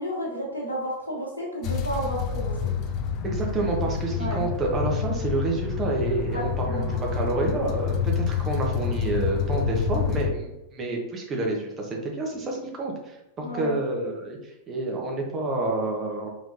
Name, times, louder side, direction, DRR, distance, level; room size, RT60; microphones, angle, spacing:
voice 1, 0.0-2.6 4.2-4.5 6.3-7.0 13.4-13.8, right 1 dB, 80° left, -5 dB, 1.4 m, -32 dB
sound 1, 1.6-10.3, left 7 dB, 40° left, 0.5 m, -28 dB
voice 2, 3.2-16.3, right 2 dB, 25° right, 0 dB, 1.2 m, -28 dB
4.7 x 3.9 x 2.8 m, 0.93 s
figure-of-eight pair, 90°, 0 cm